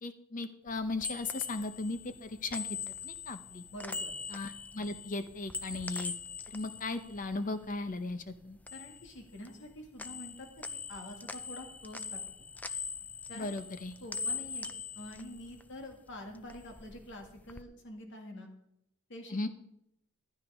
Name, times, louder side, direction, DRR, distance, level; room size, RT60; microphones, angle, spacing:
voice 1, 0.0-2.7 3.0-3.6 4.3-6.1 6.5-8.6 13.3-13.9 19.3-19.5, left 2 dB, 40° left, 10 dB, 0.8 m, -37 dB
sound 1, 0.7-8.0 8.3-9.7 10.0-16.0 16.3-17.6, left 5 dB, 5° left, 0.4 m, -42 dB
voice 2, 3.7-4.2 8.7-12.5 13.3-13.5 14.0-14.7 15.0-18.5 19.1-19.4, left 1 dB, 60° left, 3 dB, 2.1 m, -47 dB
15.0 x 11.0 x 3.6 m, 0.79 s
head